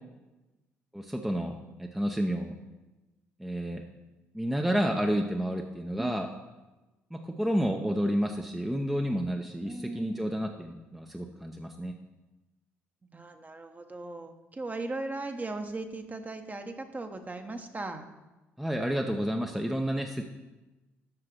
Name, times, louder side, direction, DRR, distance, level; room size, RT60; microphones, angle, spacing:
voice 1, 0.9-2.5 3.4-3.8 4.3-6.3 7.1-11.9 18.6-20.2, equal, 5° right, 3 dB, 0.8 m, -30 dB
voice 2, 9.6-10.4 13.1-18.1, right 2 dB, 25° right, 6 dB, 1.1 m, -38 dB
7.7 x 5.9 x 6.1 m, 1.1 s
hypercardioid pair, 50°, 7 cm